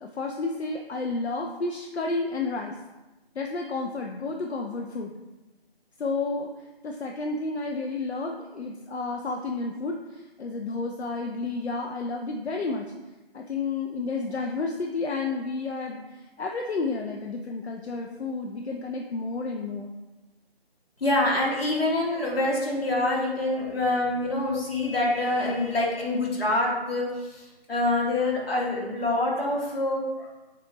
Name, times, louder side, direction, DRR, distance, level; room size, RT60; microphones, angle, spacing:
voice 1, 0.0-2.8 3.4-5.1 6.0-12.9 13.3-19.9, left 3 dB, 85° left, 2 dB, 0.5 m, -31 dB
voice 2, 21.0-30.3, left 2 dB, 65° left, -3 dB, 1.5 m, -26 dB
6.6 x 2.4 x 2.9 m, 1.1 s
figure-of-eight pair, 160°, 32 cm